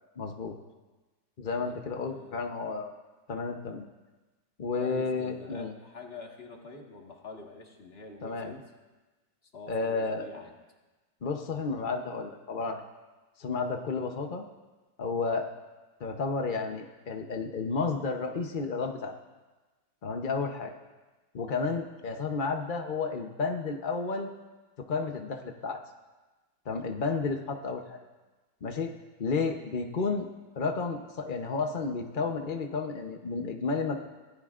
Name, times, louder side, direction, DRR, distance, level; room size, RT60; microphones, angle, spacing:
voice 1, 0.2-0.6 1.4-2.9 3.3-3.8 4.6-5.7 8.2-8.5 9.7-10.3 11.2-12.8 13.4-14.4 15.0-15.5 16.0-19.1 20.0-20.7 21.3-24.3 24.9-25.8 26.7-28.0 28.6-28.9 29.2-30.3 30.6-33.9, left 4 dB, 60° left, 3 dB, 0.5 m, -32 dB
voice 2, 1.6-2.5 4.8-8.6 9.5-10.5, left 3 dB, 30° left, 1 dB, 1.7 m, -46 dB
24.5 x 17.0 x 2.5 m, 1.2 s
omnidirectional pair, 2.2 m